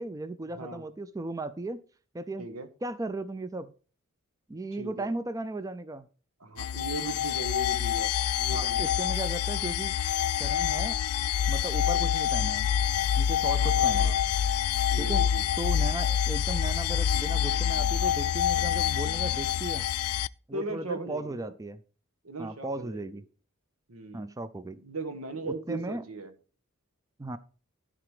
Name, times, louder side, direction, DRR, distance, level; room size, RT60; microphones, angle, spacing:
voice 1, 0.0-1.8 2.1-2.4 2.8-3.7 4.5-6.1 8.5-10.0 10.4-11.0 11.5-12.7 13.2-14.1 15.0-15.2 15.6-19.9 20.5-21.8 22.4-23.2 24.1-24.8 25.4-26.0 27.2-27.4, right 2 dB, 15° right, 14 dB, 0.4 m, -36 dB
voice 2, 4.8-5.1 6.4-8.1 8.4-8.8 11.8-12.1 13.5-14.2 14.9-15.4 20.5-21.5 22.2-23.1 23.9-24.3 24.8-26.3, right 2 dB, 85° right, 9 dB, 1.4 m, -38 dB
sound 1, 6.6-20.3, left 9 dB, 80° left, 0.3 m, -26 dB
13.0 x 4.9 x 4.9 m, 0.38 s
head